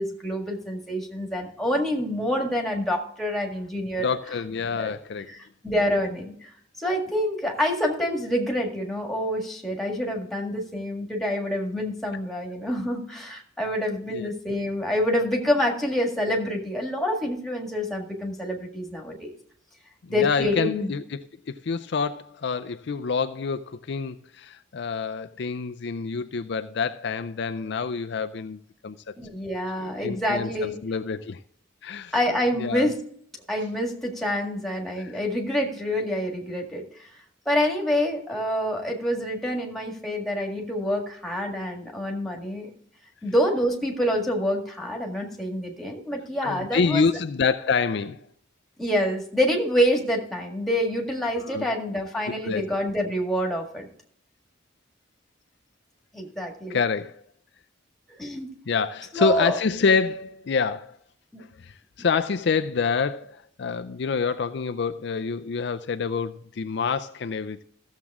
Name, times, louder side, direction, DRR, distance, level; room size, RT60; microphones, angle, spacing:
voice 1, 0.0-4.1 4.8-4.9 5.6-6.5 6.8-19.3 20.1-20.9 29.2-30.8 32.1-33.0 33.5-37.1 37.5-42.7 43.2-47.1 48.8-53.9 56.1-56.8 58.2-58.5 59.1-59.6 61.3-61.4, equal, ahead, 1.8 m, -27 dB
voice 2, 4.0-5.3 14.1-14.3 20.0-29.1 29.8-31.4 31.8-32.1 32.6-32.9 35.0-35.2 46.4-48.3 51.4-51.7 52.3-52.6 56.7-57.2 58.7-61.0 61.6-67.6, left 5 dB, 55° left, 0.4 m, -27 dB
14.5 x 7.3 x 3.6 m
head